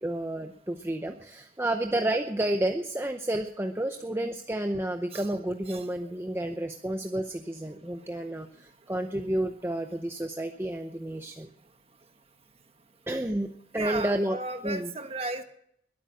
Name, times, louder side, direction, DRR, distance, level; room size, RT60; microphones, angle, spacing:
voice 1, 0.0-11.5 13.1-14.4 14.6-14.9, right 1 dB, 10° right, 5 dB, 0.7 m, -31 dB
voice 2, 13.7-15.4, right 2 dB, 30° right, 7 dB, 1.4 m, -35 dB
21.5 x 8.8 x 6.3 m, 0.70 s
head